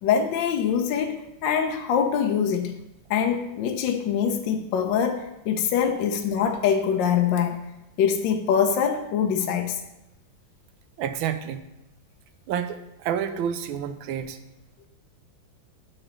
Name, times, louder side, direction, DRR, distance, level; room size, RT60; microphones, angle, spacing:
voice 1, 0.0-2.7 3.1-7.6 8.0-9.8, left 7 dB, 70° left, 1.3 m, -24 dB
voice 2, 11.0-11.6 12.5-14.4, right 8 dB, 80° right, 1.5 m, -29 dB
7.4 x 5.0 x 6.3 m
omnidirectional pair, 2.2 m